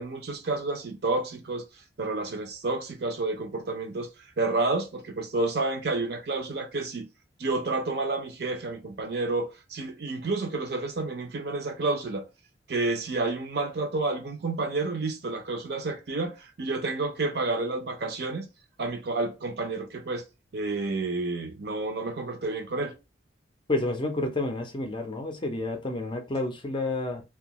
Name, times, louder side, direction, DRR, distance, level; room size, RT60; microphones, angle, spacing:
voice 1, 0.0-1.6 2.0-4.1 4.4-7.1 7.4-12.2 12.7-18.5 18.8-20.2 20.5-22.9, right 3 dB, 55° right, 0.5 m, -30 dB
voice 2, 23.7-27.2, left 2 dB, 25° left, 0.4 m, -30 dB
2.6 x 2.3 x 2.8 m
head